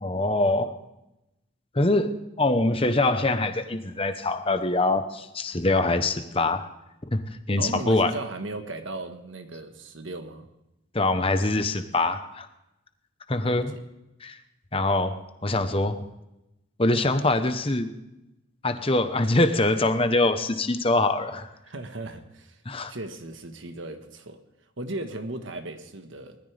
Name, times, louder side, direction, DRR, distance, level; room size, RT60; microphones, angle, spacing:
voice 1, 0.0-0.7 1.7-6.7 7.1-8.2 10.9-12.5 13.3-13.8 14.2-14.4 14.7-16.1 16.8-17.9 18.6-21.5 22.6-22.9, left 2 dB, 25° left, 9 dB, 1.0 m, -24 dB
voice 2, 7.6-10.5 13.4-13.8 21.6-22.6 22.9-24.4 24.8-26.4, right 2 dB, 70° right, 7 dB, 1.5 m, -36 dB
20.0 x 14.0 x 3.5 m, 0.91 s
head